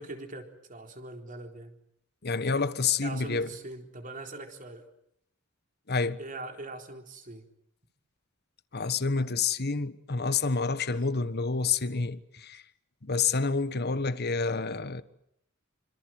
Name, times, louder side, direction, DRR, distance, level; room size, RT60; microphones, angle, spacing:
voice 1, 0.0-1.8 3.0-4.9 6.2-7.4, right 2 dB, 40° right, 4.0 m, -42 dB
voice 2, 2.2-3.5 5.9-6.2 8.7-12.6 13.0-15.0, left 4 dB, 50° left, 1.3 m, -28 dB
27.5 x 26.0 x 7.8 m
head